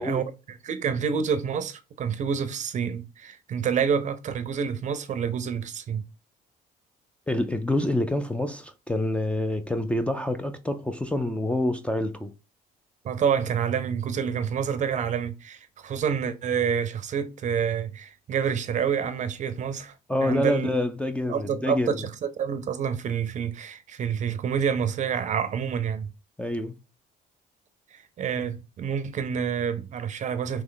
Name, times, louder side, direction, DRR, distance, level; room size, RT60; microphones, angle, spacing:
voice 1, 0.0-6.0 13.0-19.9 20.2-20.7 21.3-26.1 27.9-30.6, right 7 dB, 45° right, 0.5 m, -28 dB
voice 2, 7.3-12.3 20.1-22.0 26.4-26.7, left 1 dB, 5° left, 0.4 m, -27 dB
3.2 x 3.0 x 3.8 m
cardioid pair, 110°, 17 cm